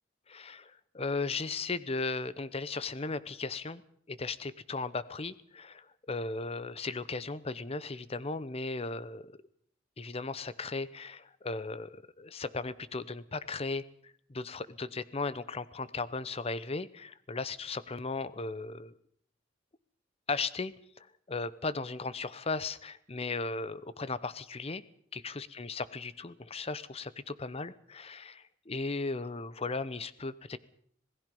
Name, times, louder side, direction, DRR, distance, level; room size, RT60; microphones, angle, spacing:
voice 1, 0.3-3.8 4.1-9.4 10.0-18.9 20.3-24.8 25.1-30.6, left 3 dB, 30° left, 17 dB, 0.8 m, -36 dB
26.5 x 18.0 x 5.4 m, 0.62 s
head